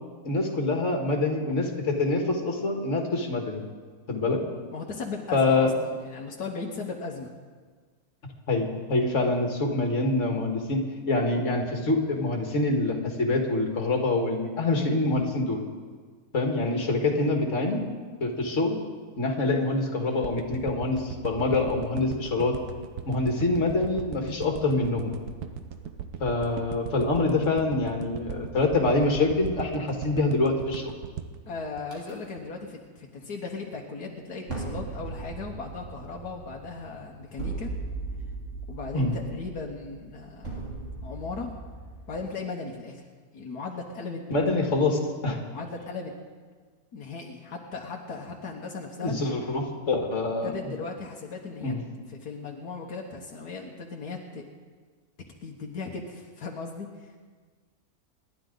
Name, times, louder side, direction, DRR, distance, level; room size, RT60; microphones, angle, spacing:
voice 1, 0.2-3.6 4.1-4.4 5.3-5.7 8.5-15.6 16.3-17.8 18.2-18.8 19.2-22.6 23.1-25.2 26.2-30.9 38.9-39.2 44.3-45.4 49.0-50.5 51.6-51.8, left 2 dB, 50° left, 2 dB, 2.2 m, -25 dB
voice 2, 4.7-7.3 31.5-37.7 38.7-40.6 41.0-41.5 42.1-43.0 43.3-44.2 45.5-46.2 46.9-49.1 50.4-51.8 52.1-54.4 55.4-57.1, left 4 dB, 75° left, 0 dB, 1.7 m, -37 dB
sound 1, 20.2-32.6 33.0-33.1, right 8 dB, 75° right, 1.4 m, -38 dB
sound 2, 31.9-32.1 34.5-42.2, right 3 dB, 50° right, 3.5 m, -38 dB
27.0 x 11.5 x 3.9 m, 1.5 s
omnidirectional pair, 1.7 m